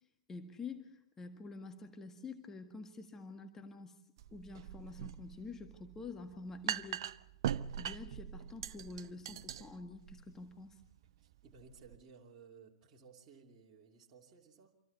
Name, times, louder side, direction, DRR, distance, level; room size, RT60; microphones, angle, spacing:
voice 1, 0.3-4.0 4.3-7.1 7.8-10.8, left 3 dB, 15° left, 1.7 m, -48 dB
sound 1, 4.2-12.0, right 10 dB, 50° right, 0.7 m, -42 dB
voice 2, 11.2-14.8, right 5 dB, 25° right, 3.0 m, -58 dB
28.0 x 25.5 x 4.2 m
figure-of-eight pair, 105°, 3 cm